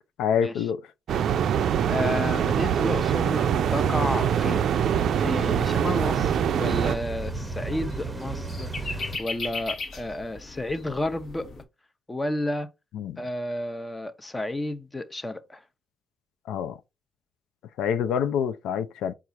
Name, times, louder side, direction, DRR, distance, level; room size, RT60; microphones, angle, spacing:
voice 1, 0.2-0.8 12.9-13.2 16.5-16.8 17.8-19.1, left 8 dB, 85° left, 0.4 m, -26 dB
sound 1, 1.1-7.0, right 9 dB, 70° right, 0.4 m, -24 dB
voice 2, 1.8-4.6 5.2-11.5 12.1-12.7 13.2-15.6, left 1 dB, 15° left, 0.7 m, -31 dB
sound 2, 3.8-9.2, right 3 dB, 20° right, 0.8 m, -34 dB
sound 3, 6.5-11.6, left 3 dB, 55° left, 1.0 m, -38 dB
4.7 x 2.4 x 4.0 m
cardioid pair, 90°, 0 cm